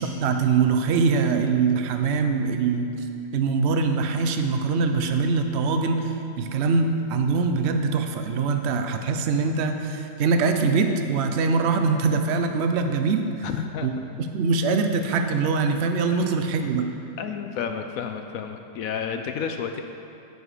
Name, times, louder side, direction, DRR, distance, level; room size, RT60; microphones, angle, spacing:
voice 1, 0.1-3.1 3.3-13.3 13.8-13.9 14.3-16.9, right 4 dB, 80° right, 6 dB, 0.6 m, -23 dB
voice 2, 13.4-14.0 16.1-16.4 17.2-19.8, left 7 dB, 75° left, 6 dB, 0.8 m, -31 dB
9.7 x 8.1 x 4.9 m, 2.7 s
omnidirectional pair, 1.9 m